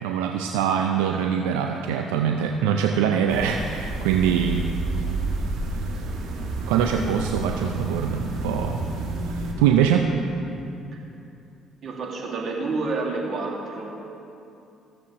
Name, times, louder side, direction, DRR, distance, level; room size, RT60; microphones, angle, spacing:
voice 1, 0.0-4.7 6.7-8.8 9.6-10.0, right 8 dB, 85° right, 4 dB, 0.4 m, -23 dB
sound 1, 3.3-9.5, right 2 dB, 70° right, 1.4 m, -29 dB
voice 2, 11.8-13.9, right 3 dB, 50° right, -2 dB, 1.9 m, -29 dB
15.0 x 7.2 x 2.9 m, 2.7 s
hypercardioid pair, 60°, 0 cm